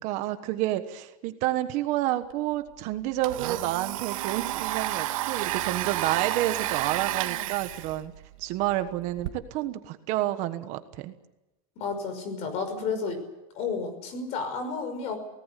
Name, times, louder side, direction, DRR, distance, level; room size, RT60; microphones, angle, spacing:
voice 1, 0.0-8.1 8.4-11.1 12.7-12.9, right 14 dB, 40° right, 10 dB, 1.3 m, -29 dB
Domestic sounds home sounds, 2.3-2.4 2.7-9.3, right 15 dB, 70° right, 1.9 m, -32 dB
voice 2, 11.8-13.2 13.5-15.2, left 5 dB, 35° left, 9 dB, 5.7 m, -31 dB
24.5 x 18.5 x 8.4 m, 1.0 s
supercardioid pair, 165°, 18 cm